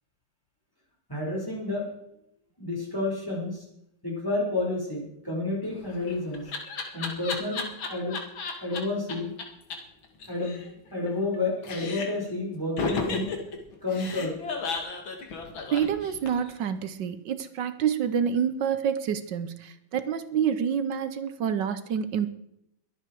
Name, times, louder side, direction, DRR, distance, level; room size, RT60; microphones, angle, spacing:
voice 1, 1.1-1.9 2.6-3.6 4.0-6.5 6.9-7.6 7.9-8.2 8.6-9.3 10.3-10.6 10.9-13.3 13.8-14.3, left 2 dB, 10° left, -3 dB, 5.1 m, -30 dB
Laughter, 5.7-8.8 9.1-9.2 9.4-9.5 9.7-9.8 10.0-11.4 11.6-12.3 12.8-16.5, left 4 dB, 85° left, 2.8 m, -33 dB
voice 2, 15.7-22.3, right 8 dB, 70° right, 12 dB, 1.5 m, -28 dB
22.5 x 9.0 x 4.7 m, 0.77 s
omnidirectional pair, 2.1 m